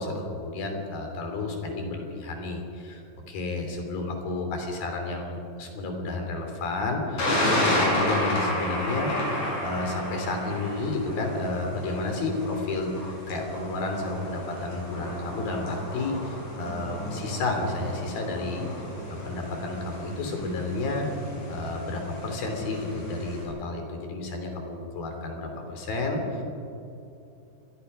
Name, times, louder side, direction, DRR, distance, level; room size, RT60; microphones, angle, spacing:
voice 1, 0.0-3.0 3.3-9.1 9.6-12.9 13.3-18.7 19.1-21.1 21.5-26.4, left 2 dB, 55° left, 3 dB, 4.8 m, -31 dB
Thunder, 7.2-23.4, left 1 dB, 40° left, 7.4 m, -32 dB
27.0 x 21.5 x 5.6 m, 2.8 s
omnidirectional pair, 5.3 m